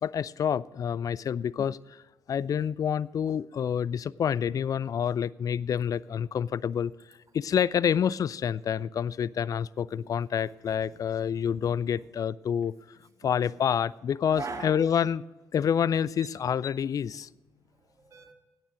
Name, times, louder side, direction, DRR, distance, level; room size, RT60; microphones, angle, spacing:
voice 1, 0.0-2.0 2.3-6.9 7.3-12.7 13.2-15.2 15.5-17.3, left 8 dB, 40° left, 0.4 m, -28 dB
voice 2, 10.4-11.1 13.2-13.6 14.3-14.9 17.5-18.3, right 4 dB, 35° right, 2.2 m, -42 dB
14.0 x 9.5 x 5.0 m
figure-of-eight pair, 45°, 10 cm